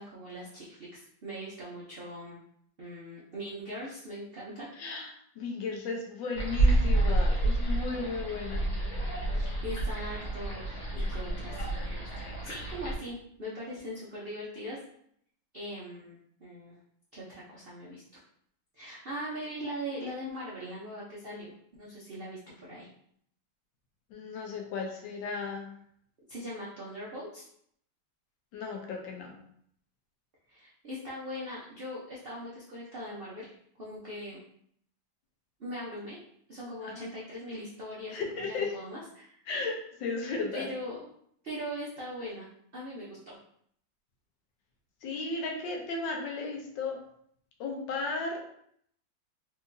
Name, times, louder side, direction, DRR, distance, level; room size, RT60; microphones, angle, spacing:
voice 1, 0.0-2.4 2.8-4.7 9.3-12.1 12.4-14.8 15.5-16.7 17.1-18.0 18.7-21.5 21.8-22.9 26.3-27.4 30.5-33.5 33.8-34.4 35.6-36.2 36.5-39.4 40.5-41.1 41.4-42.5 42.7-43.4, equal, 70° right, -7 dB, 0.5 m, -40 dB
voice 2, 4.8-8.7 24.1-25.7 28.5-29.4 36.8-37.0 38.1-38.8 39.5-40.7 45.0-47.0 47.6-48.4, left 4 dB, 75° left, 1 dB, 1.4 m, -35 dB
sound 1, 6.4-12.9, right 1 dB, 50° left, 1.3 m, -29 dB
3.6 x 2.8 x 2.6 m, 0.67 s
omnidirectional pair, 2.1 m